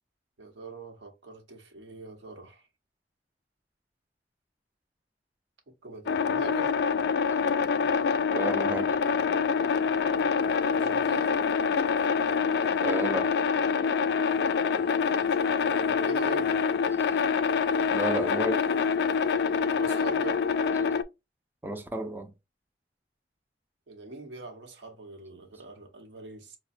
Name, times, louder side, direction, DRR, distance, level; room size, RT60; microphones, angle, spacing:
voice 1, 0.4-2.6 5.8-6.8 10.7-11.3 15.2-16.7 19.8-20.4 23.9-26.6, right 3 dB, 90° right, 0.9 m, -42 dB
sound 1, 6.1-21.0, left 6 dB, 65° left, 0.3 m, -26 dB
voice 2, 8.3-9.0 12.8-13.4 17.9-18.6 21.6-22.3, right 2 dB, 10° right, 0.4 m, -32 dB
4.8 x 2.1 x 2.5 m
head